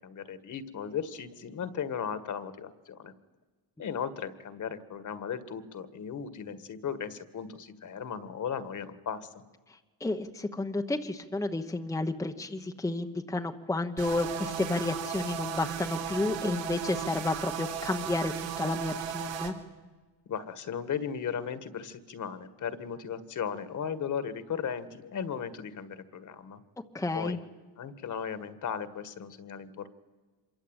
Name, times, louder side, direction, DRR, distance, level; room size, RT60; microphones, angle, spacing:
voice 1, 0.0-3.1 3.8-9.3 20.3-26.6 27.1-27.4 27.8-29.9, left 7 dB, 40° left, 13 dB, 1.8 m, -36 dB
voice 2, 10.0-19.5 26.9-27.4, left 2 dB, 5° left, 4 dB, 1.0 m, -31 dB
sound 1, 14.0-19.5, right 8 dB, 85° right, 3.9 m, -36 dB
26.5 x 23.0 x 9.0 m, 1.3 s
cardioid pair, 155°, 44 cm